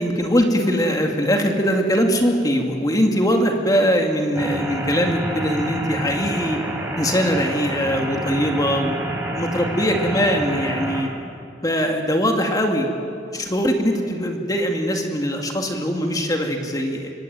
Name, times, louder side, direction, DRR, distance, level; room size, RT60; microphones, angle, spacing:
voice 1, 0.0-6.6 7.0-8.9 9.3-11.1 11.6-12.9 13.3-17.1, equal, 20° left, 3 dB, 2.2 m, -21 dB
sound 1, 4.3-11.0, right 1 dB, 10° right, 4.1 m, -28 dB
25.5 x 24.5 x 9.4 m, 2.5 s
head